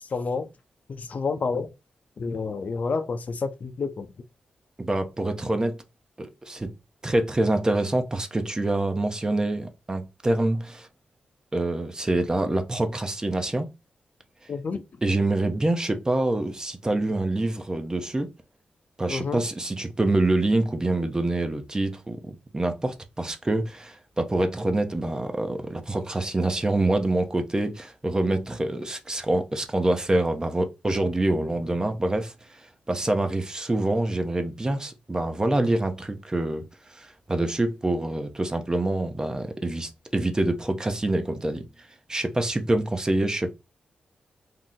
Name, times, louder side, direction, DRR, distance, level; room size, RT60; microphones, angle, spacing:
voice 1, 0.1-0.5 1.0-1.7 2.2-4.1 14.5-14.8 19.1-19.4, left 4 dB, 55° left, 0.5 m, -29 dB
voice 2, 4.8-5.8 6.2-6.7 7.0-10.9 11.5-13.7 15.0-18.3 19.0-32.6 32.9-36.6 36.9-41.7 42.1-43.5, right 2 dB, 25° right, 0.6 m, -26 dB
2.7 x 2.0 x 3.6 m
cardioid pair, 60°, 3 cm